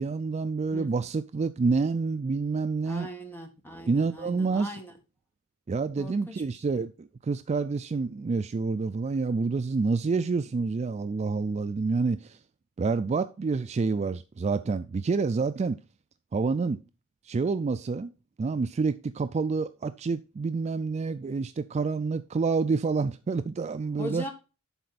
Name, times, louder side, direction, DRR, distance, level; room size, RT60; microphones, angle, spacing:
voice 1, 0.0-3.1 3.9-4.8 5.7-12.4 12.8-15.8 16.3-16.8 17.2-18.1 18.4-24.2, right 4 dB, 30° right, 0.3 m, -28 dB
voice 2, 2.8-4.9 6.0-6.4 6.7-6.8 24.0-24.3, equal, 10° left, 1.7 m, -40 dB
11.0 x 4.2 x 4.0 m
head